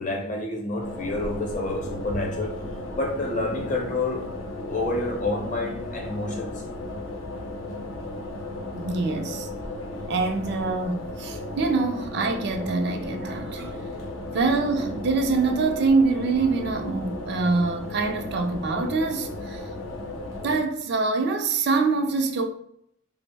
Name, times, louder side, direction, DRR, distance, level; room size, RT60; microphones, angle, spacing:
voice 1, 0.0-2.6 2.9-4.3 4.7-6.5, left 2 dB, 40° left, 0.7 m, -28 dB
sound 1, 0.8-20.6, left 1 dB, 75° left, 0.6 m, -35 dB
voice 2, 8.7-9.5 10.1-13.7 14.3-19.6 20.4-22.5, right 3 dB, 55° right, 0.4 m, -25 dB
3.4 x 2.0 x 3.3 m
head